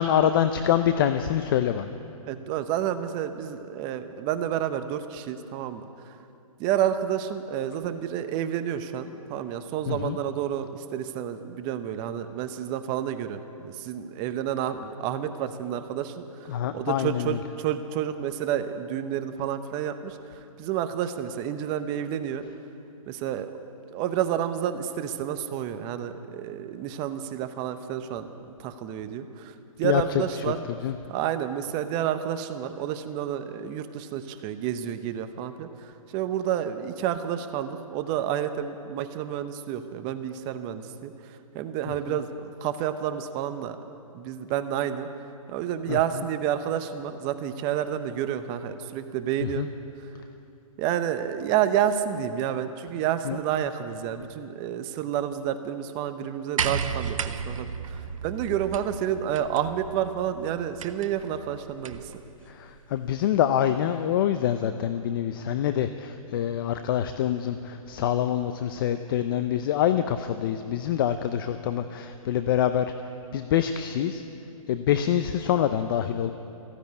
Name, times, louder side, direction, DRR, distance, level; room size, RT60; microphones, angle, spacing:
voice 1, 0.0-1.9 9.9-10.2 16.5-17.4 29.8-30.0 30.8-30.9 42.1-42.2 45.9-46.0 49.4-49.7 53.2-53.4 62.5-72.9 73.3-74.2 74.7-76.3, left 10 dB, 40° left, 10 dB, 0.6 m, -25 dB
voice 2, 2.2-6.2 6.6-22.4 23.1-23.5 23.9-28.3 28.6-30.6 31.1-43.8 44.1-45.1 45.5-49.7 50.8-62.1, right 10 dB, 25° right, 10 dB, 0.7 m, -30 dB
sound 1, 56.6-62.2 63.3-63.4, right 7 dB, 65° right, 0.9 m, -34 dB
15.0 x 10.0 x 9.5 m, 2.7 s
hypercardioid pair, 140°, 18 cm